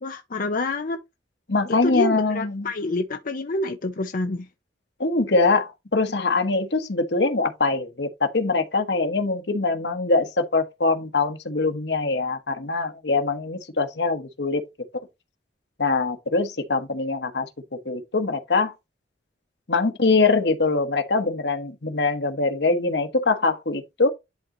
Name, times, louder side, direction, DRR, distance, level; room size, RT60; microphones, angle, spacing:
voice 1, 0.0-1.0 1.8-4.5, left 2 dB, 50° left, 0.7 m, -27 dB
voice 2, 1.5-2.7 5.0-14.6 15.8-18.7 19.7-24.1, left 3 dB, 75° left, 1.3 m, -23 dB
11.0 x 3.8 x 3.0 m
head